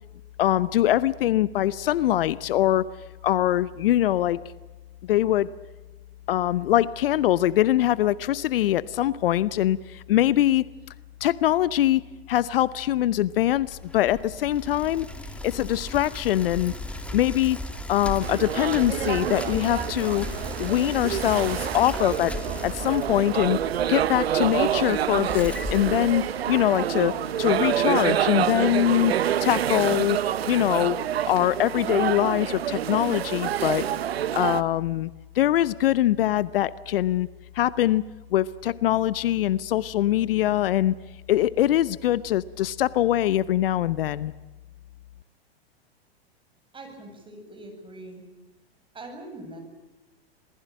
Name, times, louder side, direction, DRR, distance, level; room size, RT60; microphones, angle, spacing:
voice 1, 0.4-2.9 3.2-4.4 5.0-5.5 6.3-10.6 11.2-12.0 12.3-15.1 15.4-16.7 17.1-17.6 17.9-20.3 20.6-22.3 22.6-23.6 23.9-29.1 29.4-30.2 30.5-31.0 31.3-33.9 34.3-37.3 37.5-38.0 38.3-40.9 41.3-44.3, left 13 dB, 65° left, 19 dB, 0.9 m, -23 dB
Bicycle, 13.6-26.7, left 1 dB, 5° left, 2.9 m, -37 dB
sound 1, 18.2-34.6, right 10 dB, 75° right, 1.1 m, -27 dB
voice 2, 46.7-48.3 48.9-49.6, right 1 dB, 15° right, 4 dB, 8.0 m, -42 dB
27.0 x 19.5 x 8.8 m, 1.1 s
hypercardioid pair, 105°, 31 cm